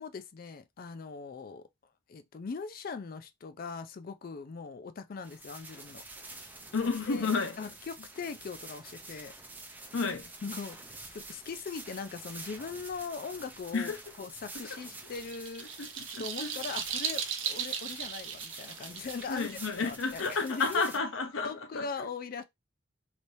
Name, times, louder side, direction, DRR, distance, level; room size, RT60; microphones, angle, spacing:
voice 1, 0.0-1.6 2.1-6.0 6.3-6.5 7.1-7.3 7.6-9.3 10.4-15.7 16.2-19.5 19.8-20.8 21.4-22.4, left 5 dB, 50° left, 0.4 m, -40 dB
sound 1, 5.2-21.0, right 2 dB, 10° right, 0.5 m, -48 dB
voice 2, 6.7-7.6 9.9-10.3 13.7-14.0 14.7-14.8 15.8-16.6 19.3-22.1, left 4 dB, 85° left, 0.7 m, -32 dB
sound 2, 14.8-20.6, right 8 dB, 85° right, 0.7 m, -37 dB
3.3 x 2.9 x 2.6 m
head